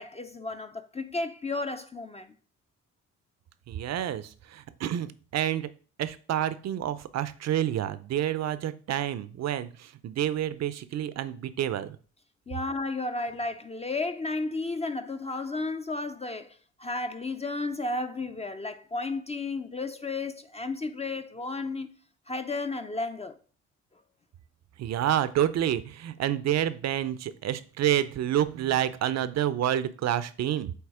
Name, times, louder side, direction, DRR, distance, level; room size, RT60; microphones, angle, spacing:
voice 1, 0.0-2.3 12.5-21.9 22.3-23.4, left 3 dB, 20° left, 0.5 m, -33 dB
voice 2, 3.7-5.7 6.0-12.0 24.8-30.7, right 11 dB, 60° right, 0.6 m, -28 dB
8.0 x 2.9 x 4.8 m
cardioid pair, 90°, 30 cm